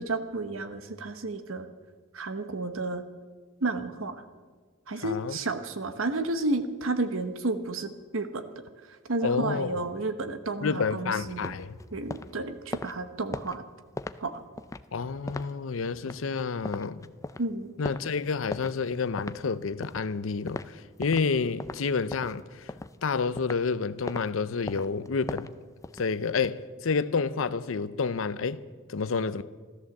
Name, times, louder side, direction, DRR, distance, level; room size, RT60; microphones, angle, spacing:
voice 1, 0.0-1.7 2.1-3.0 3.6-4.2 4.9-8.4 9.1-11.6 11.9-13.6 14.2-14.3 17.4-17.7, right 2 dB, 80° right, 1.1 m, -31 dB
voice 2, 5.0-5.4 9.2-9.8 10.6-11.8 14.9-17.0 17.8-22.7 23.0-25.5 25.9-28.6 28.9-29.4, left 5 dB, 75° left, 0.6 m, -29 dB
sound 1, 11.2-21.3 21.6-23.7 24.1-24.3 24.7-26.5, left 2 dB, 15° left, 0.4 m, -39 dB
14.5 x 13.0 x 7.2 m
head